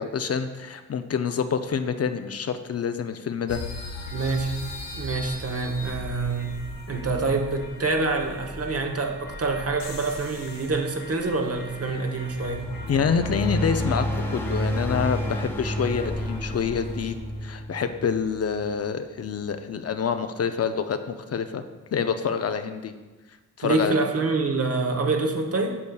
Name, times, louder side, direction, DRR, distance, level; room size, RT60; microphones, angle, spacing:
voice 1, 0.0-3.6 12.9-17.1 17.4-21.6 21.9-22.9 23.6-24.0, left 6 dB, 45° left, 9 dB, 0.5 m, -27 dB
sound 1, 3.5-17.4, left 2 dB, 90° left, 0.8 m, -39 dB
voice 2, 4.1-4.5 4.9-6.5 6.9-12.6 23.6-25.8, right 3 dB, 45° right, 3 dB, 1.0 m, -26 dB
sound 2, 12.3-18.9, equal, 5° left, 0.9 m, -30 dB
8.4 x 6.4 x 2.3 m, 1.2 s
supercardioid pair, 50°, 33 cm